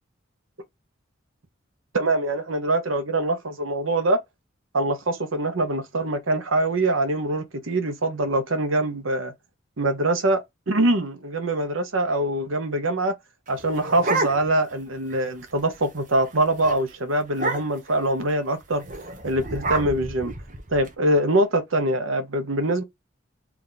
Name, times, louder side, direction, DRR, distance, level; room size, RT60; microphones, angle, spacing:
voice 1, 1.9-4.2 4.7-9.3 9.8-13.1 13.5-18.8 19.2-20.3 20.7-22.8, right 1 dB, 80° right, 1.0 m, -24 dB
sound 1, 13.5-14.7 15.1-15.2 15.5-15.8 16.1-16.3 16.6-16.8 17.3-17.9 18.8-20.9, right 2 dB, 40° right, 0.9 m, -29 dB
3.4 x 3.0 x 3.9 m
head